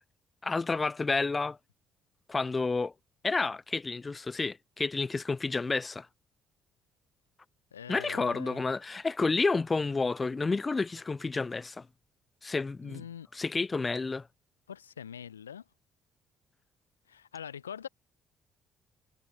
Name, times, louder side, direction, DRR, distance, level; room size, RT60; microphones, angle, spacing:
voice 1, 0.4-1.6 2.3-2.9 3.2-6.1 7.9-11.9 12.4-13.0 13.3-14.3, left 3 dB, 25° left, 0.5 m, -30 dB
voice 2, 7.7-8.6 12.8-13.3 14.7-15.6 17.1-17.9, left 8 dB, 85° left, 1.0 m, -43 dB
figure-of-eight pair, 45°, 0 cm